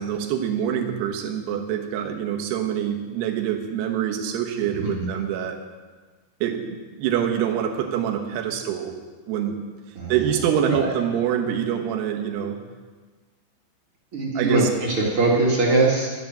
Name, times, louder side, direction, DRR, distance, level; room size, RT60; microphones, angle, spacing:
voice 1, 0.0-5.6 6.4-9.0 9.3-9.6 10.1-12.6 14.3-14.7, right 9 dB, 70° right, 3 dB, 3.2 m, -25 dB
voice 2, 4.7-5.1 10.0-10.1 10.7-10.9 14.1-16.1, right 3 dB, 40° right, -3 dB, 2.3 m, -21 dB
12.0 x 10.5 x 7.5 m, 1.4 s
omnidirectional pair, 5.2 m